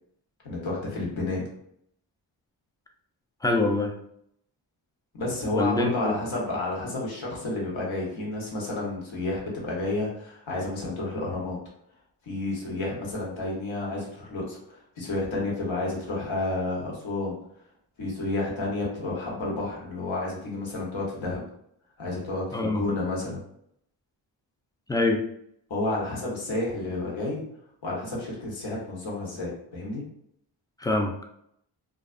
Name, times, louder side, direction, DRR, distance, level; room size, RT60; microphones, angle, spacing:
voice 1, 0.4-1.4 5.2-11.6 12.2-17.4 18.0-21.4 22.0-23.4 25.7-27.4 27.8-30.0, left 2 dB, 70° left, -3 dB, 1.1 m, -30 dB
voice 2, 3.4-3.9 5.5-6.1 22.5-22.8 24.9-25.2 30.8-31.1, left 2 dB, 10° left, 3 dB, 0.3 m, -24 dB
2.3 x 2.2 x 2.4 m, 0.71 s
supercardioid pair, 40°, 49 cm